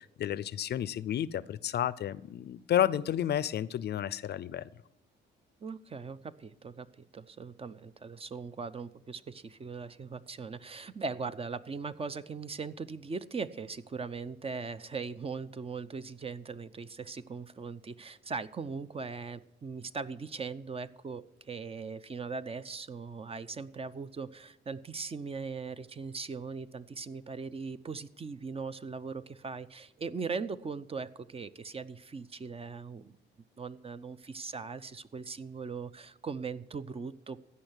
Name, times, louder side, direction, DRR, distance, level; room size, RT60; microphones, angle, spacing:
voice 1, 0.0-4.7, left 10 dB, 55° left, 18 dB, 0.5 m, -31 dB
voice 2, 5.6-33.2 33.6-37.4, right 5 dB, 30° right, 13 dB, 0.6 m, -40 dB
15.5 x 5.6 x 8.0 m, 0.85 s
cardioid pair, 90°, 20 cm